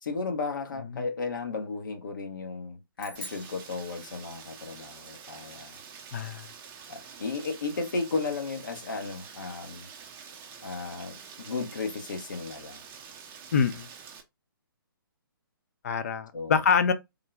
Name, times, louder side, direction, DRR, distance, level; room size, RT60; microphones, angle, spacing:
voice 1, 0.0-5.8 6.9-9.9 10.6-12.8 16.3-16.6, left 4 dB, 60° left, 1.0 m, -34 dB
sound 1, 3.0-4.6, left 1 dB, 75° left, 1.7 m, -46 dB
Rain, 3.2-14.2, right 6 dB, 20° right, 0.6 m, -47 dB
voice 2, 6.1-6.5 13.5-13.9 15.8-16.9, left 6 dB, 40° left, 0.4 m, -25 dB
3.7 x 2.2 x 3.4 m
figure-of-eight pair, 130°, 12 cm